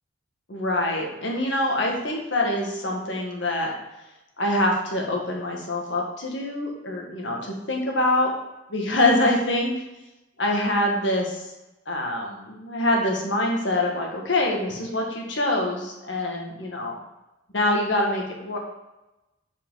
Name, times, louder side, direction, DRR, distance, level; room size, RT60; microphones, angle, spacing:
voice 1, 0.5-3.7 4.4-8.3 8.7-9.7 10.4-11.5 11.9-17.0 17.5-18.6, left 1 dB, 70° left, 0 dB, 1.6 m, -25 dB
7.2 x 4.9 x 3.8 m, 0.99 s
head